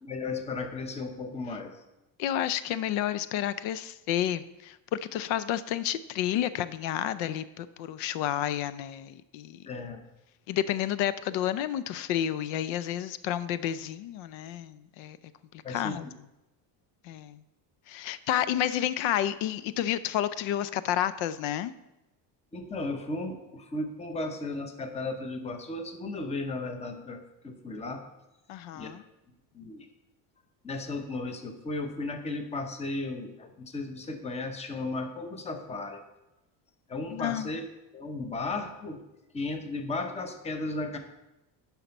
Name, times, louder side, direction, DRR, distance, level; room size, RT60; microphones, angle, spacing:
voice 1, 0.0-1.8 9.7-10.0 15.6-16.1 22.5-28.0 28.7-28.9 29.5-29.9 30.6-36.0 36.9-37.6 37.9-39.0 39.3-41.0, left 2 dB, 15° left, 7 dB, 0.7 m, -35 dB
voice 2, 2.2-9.6 10.5-15.2 15.7-16.1 17.0-17.4 17.9-21.7 28.5-29.0 37.1-37.5, left 11 dB, 85° left, 15 dB, 0.6 m, -30 dB
10.0 x 5.8 x 5.3 m, 0.94 s
cardioid pair, 160°, 45 cm